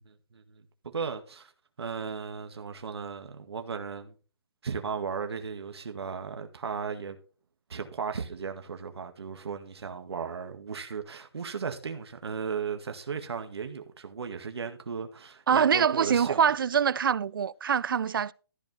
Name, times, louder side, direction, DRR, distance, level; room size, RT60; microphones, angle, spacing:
voice 1, 0.1-1.5 1.8-4.1 4.6-7.2 7.7-16.4, right 6 dB, 85° right, 1.9 m, -36 dB
voice 2, 15.5-18.3, right 7 dB, 60° right, 0.4 m, -24 dB
14.0 x 4.7 x 5.4 m
hypercardioid pair, 175°, 13 cm